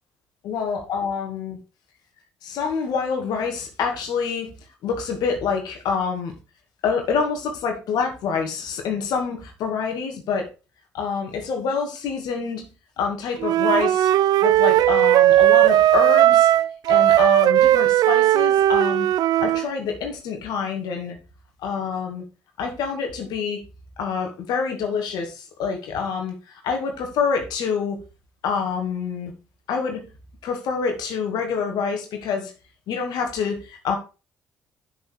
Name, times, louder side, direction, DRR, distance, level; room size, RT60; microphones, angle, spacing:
voice 1, 0.4-1.6 2.4-4.5 4.8-6.3 6.8-10.5 10.9-12.7 13.0-14.1 14.4-16.5 16.9-19.1 19.4-21.2 21.6-22.2 22.6-23.6 24.0-28.0 28.4-29.3 29.7-30.0 30.4-32.5 32.9-34.0, left 5 dB, 70° left, 3 dB, 2.3 m, -26 dB
Wind instrument woodwind instrument, 13.4-19.7, right 13 dB, 65° right, 0.4 m, -17 dB
7.7 x 7.0 x 4.7 m, 0.31 s
hypercardioid pair, 50°, 7 cm